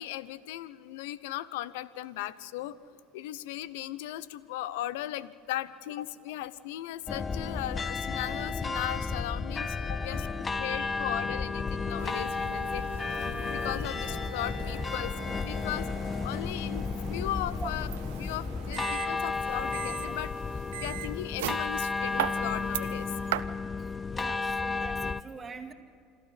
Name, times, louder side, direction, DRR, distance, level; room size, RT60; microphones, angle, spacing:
voice 1, 0.0-2.8 3.1-10.3 10.6-12.8 13.1-15.1 15.4-15.9 16.2-17.9 18.2-20.3 20.8-23.1, left 14 dB, 70° left, 17 dB, 0.7 m, -37 dB
sound 1, 7.1-25.2, left 4 dB, 25° left, 0.6 m, -33 dB
sound 2, 12.0-23.4, right 14 dB, 80° right, 0.6 m, -40 dB
voice 2, 24.1-25.7, right 5 dB, 25° right, 2 dB, 2.3 m, -43 dB
27.5 x 12.5 x 7.7 m, 2.4 s
hypercardioid pair, 75°, 0 cm